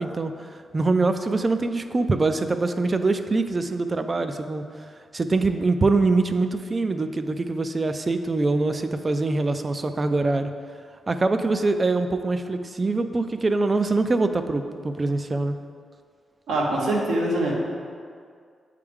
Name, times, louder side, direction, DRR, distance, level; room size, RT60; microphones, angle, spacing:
voice 1, 0.0-4.6 5.1-10.5 11.1-15.6, right 3 dB, 35° right, 8 dB, 0.4 m, -24 dB
voice 2, 16.5-17.5, right 1 dB, 85° right, -3 dB, 1.2 m, -23 dB
8.5 x 3.3 x 3.5 m, 2.2 s
cardioid pair, 60°, 0 cm